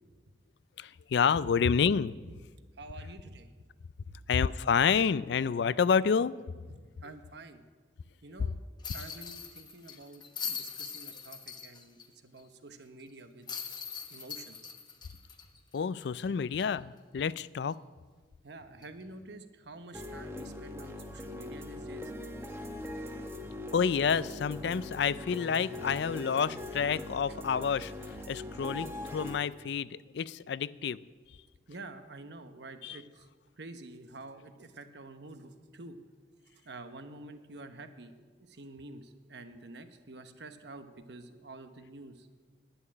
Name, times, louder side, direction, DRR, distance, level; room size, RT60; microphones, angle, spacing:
voice 1, 0.8-2.2 4.3-6.3 8.4-8.5 15.7-17.8 23.7-31.0 32.8-33.0, left 6 dB, 65° left, 18 dB, 0.3 m, -29 dB
voice 2, 2.8-3.5 6.7-7.6 8.2-8.6 8.9-10.2 10.5-12.0 12.2-13.5 14.1-14.7 18.4-22.1 27.3-27.4 31.7-33.3 33.6-36.0 36.6-38.1 38.4-42.3, right 2 dB, 65° right, 8 dB, 1.0 m, -48 dB
sound 1, 8.8-12.1 12.4-12.5 13.5-16.2 16.6-16.7 18.8-19.0, left 6 dB, 20° left, 0.9 m, -41 dB
sound 2, 19.9-29.4, left 1 dB, 15° right, 0.9 m, -41 dB
11.0 x 8.8 x 9.8 m, 1.4 s
head